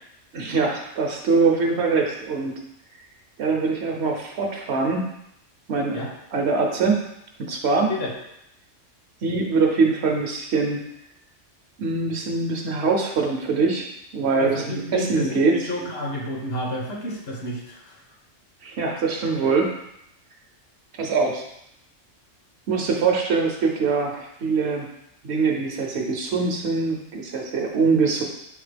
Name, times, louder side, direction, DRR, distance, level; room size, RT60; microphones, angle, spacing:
voice 1, 0.3-2.6 3.4-5.1 5.7-6.0 6.3-7.0 7.4-7.9 9.2-10.8 11.8-13.9 14.1-15.7 18.6-19.7 20.9-21.4 22.7-24.9 25.2-28.2, right 4 dB, 65° right, 2 dB, 0.8 m, -23 dB
voice 2, 14.4-18.0, left 1 dB, 55° left, -1 dB, 1.0 m, -31 dB
4.2 x 3.5 x 3.3 m, 0.80 s
omnidirectional pair, 1.3 m